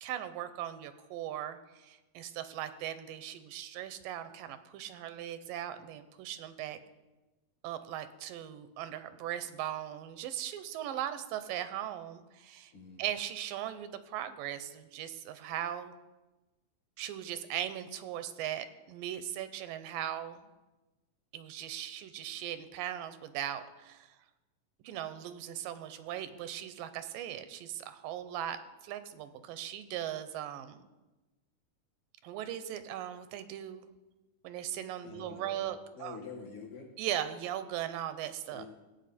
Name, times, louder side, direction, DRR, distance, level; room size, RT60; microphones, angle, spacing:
voice 1, 0.0-6.8 7.6-12.7 13.0-15.9 17.0-20.5 21.3-24.2 24.8-30.9 32.2-33.9 34.4-36.2 37.0-38.7, right 11 dB, 85° right, 11 dB, 2.4 m, -39 dB
voice 2, 12.7-13.0 35.0-36.9 38.5-38.7, left 5 dB, 60° left, 0 dB, 2.9 m, -47 dB
16.0 x 8.6 x 4.2 m, 1.1 s
omnidirectional pair, 3.9 m